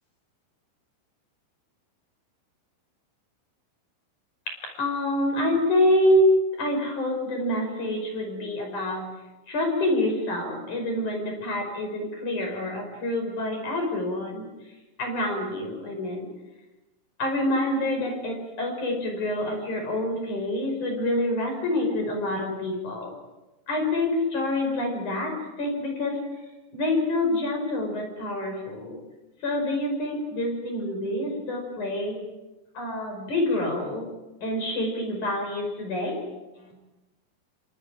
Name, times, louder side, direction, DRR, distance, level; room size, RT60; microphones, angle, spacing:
voice 1, 4.7-9.0 9.5-14.5 15.0-16.3 17.2-23.1 23.7-26.2 26.7-29.0 29.4-32.3 32.7-34.1 34.4-36.2 36.6-36.7, left 1 dB, 40° left, 3 dB, 6.5 m, -26 dB
27.0 x 26.5 x 5.0 m, 1.1 s
omnidirectional pair, 5.9 m